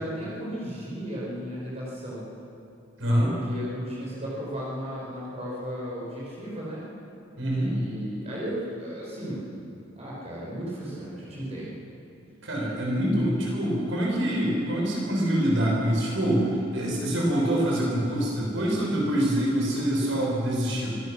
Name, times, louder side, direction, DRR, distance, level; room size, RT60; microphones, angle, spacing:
voice 1, 0.0-2.2 3.2-6.8 7.6-9.5 10.0-11.8, equal, 30° right, -6 dB, 5.5 m, -35 dB
voice 2, 3.0-3.3 7.4-7.8 12.4-20.9, equal, 65° right, -3 dB, 5.8 m, -25 dB
24.0 x 17.5 x 6.6 m, 2.6 s
head